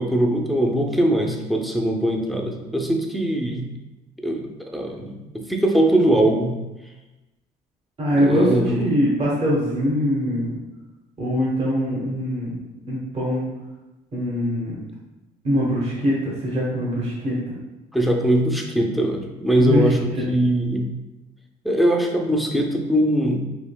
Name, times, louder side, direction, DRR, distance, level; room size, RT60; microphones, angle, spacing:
voice 1, 0.0-3.7 4.2-6.6 8.2-8.8 17.9-20.9 21.6-23.4, right 1 dB, ahead, 1 dB, 0.5 m, -21 dB
voice 2, 8.0-10.5 11.2-12.6 12.9-13.5 14.1-14.7 15.4-17.4 19.6-19.8 20.2-20.3, equal, 35° right, -5 dB, 1.1 m, -22 dB
4.8 x 2.8 x 2.2 m, 1.1 s
cardioid pair, 110°, 17 cm